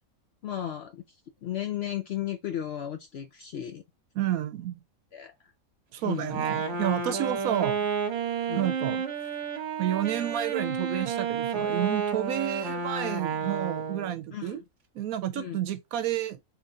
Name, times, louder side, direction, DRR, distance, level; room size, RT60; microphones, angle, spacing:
voice 1, 0.4-3.8 5.1-5.3 6.0-6.5 8.5-8.7 14.3-14.6 15.3-15.6, left 11 dB, 65° left, 0.6 m, -35 dB
voice 2, 4.1-4.8 5.9-7.9 8.6-9.0 9.8-14.6 14.9-16.4, right 12 dB, 80° right, 1.1 m, -30 dB
Wind instrument woodwind instrument, 6.2-14.2, right 6 dB, 50° right, 1.1 m, -31 dB
3.8 x 3.1 x 3.8 m
omnidirectional pair, 1.5 m